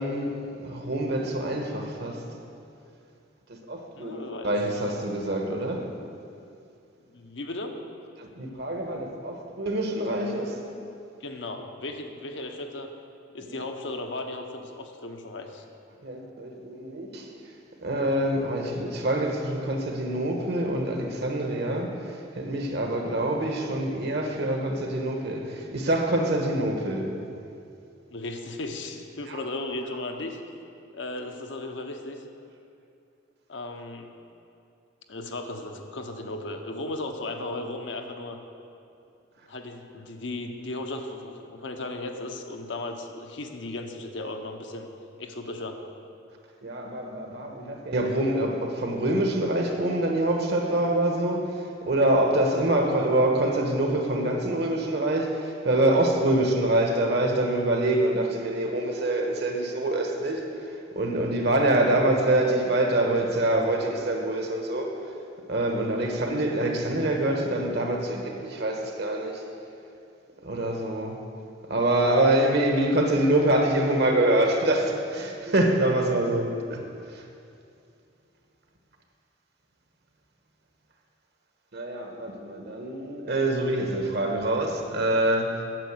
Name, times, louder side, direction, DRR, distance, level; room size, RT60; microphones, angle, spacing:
voice 1, 0.0-2.2 3.7-5.9 8.2-10.6 13.4-13.6 16.0-17.3 17.8-27.1 29.3-29.4 46.6-60.5 60.9-65.0 65.5-69.4 70.4-71.2 71.7-76.8 77.1-77.2 81.7-85.6, right 1 dB, 60° right, 1.3 m, -25 dB
voice 2, 3.9-4.6 7.1-7.8 11.2-12.9 13.3-15.6 28.1-30.4 30.9-32.2 33.5-34.1 35.1-38.4 39.4-44.9 45.2-45.8 65.9-66.2, left 2 dB, 70° left, 0.9 m, -36 dB
9.1 x 7.0 x 8.0 m
head